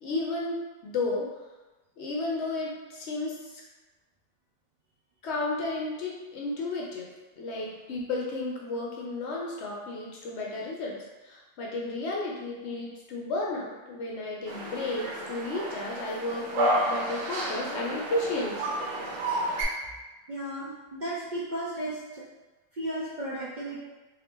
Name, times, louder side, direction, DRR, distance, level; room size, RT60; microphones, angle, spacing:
voice 1, 0.0-1.3 2.0-3.6 5.2-7.1 7.4-18.7, left 2 dB, 65° left, -2 dB, 0.8 m, -33 dB
sound 1, 14.5-19.6, right 1 dB, 75° right, 1.1 m, -31 dB
voice 2, 20.3-22.2 22.7-23.9, right 1 dB, 50° right, -8 dB, 0.6 m, -34 dB
2.7 x 2.6 x 3.5 m, 1.2 s
omnidirectional pair, 1.4 m